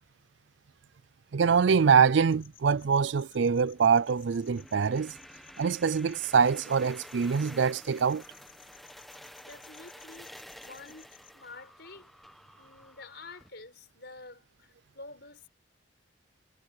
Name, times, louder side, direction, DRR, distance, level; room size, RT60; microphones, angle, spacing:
voice 1, 1.3-5.1 5.6-8.2, right 6 dB, 65° right, 0.4 m, -24 dB
sound 1, 2.3-11.3, left 10 dB, 85° left, 4.7 m, -58 dB
sound 2, 3.7-13.5, equal, ahead, 1.3 m, -51 dB
voice 2, 9.4-12.1 12.6-15.5, left 3 dB, 55° left, 5.9 m, -49 dB
head